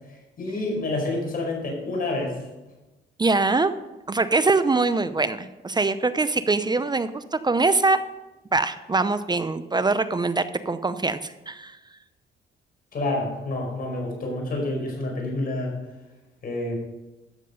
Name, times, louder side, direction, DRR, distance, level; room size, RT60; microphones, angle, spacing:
voice 1, 0.4-2.4 12.9-15.7 16.4-16.7, left 2 dB, 45° left, 0 dB, 5.0 m, -28 dB
voice 2, 3.2-3.7 4.1-8.0 8.5-11.8, right 3 dB, 20° right, 12 dB, 0.6 m, -23 dB
13.0 x 7.5 x 5.3 m, 1.0 s
cardioid pair, 90°, 20 cm